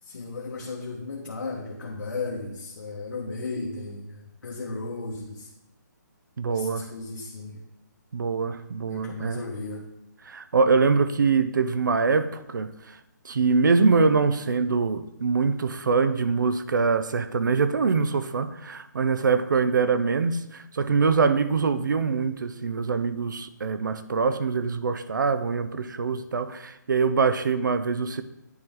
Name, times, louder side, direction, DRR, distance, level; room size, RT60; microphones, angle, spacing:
voice 1, 0.0-5.5 6.5-7.6 8.9-9.9 13.4-13.5, left 3 dB, 85° left, 1.2 m, -35 dB
voice 2, 6.4-6.9 8.1-9.4 10.2-13.0 13.2-28.2, right 4 dB, 90° right, 0.6 m, -24 dB
9.5 x 4.6 x 3.7 m
hypercardioid pair, 180°, 10 cm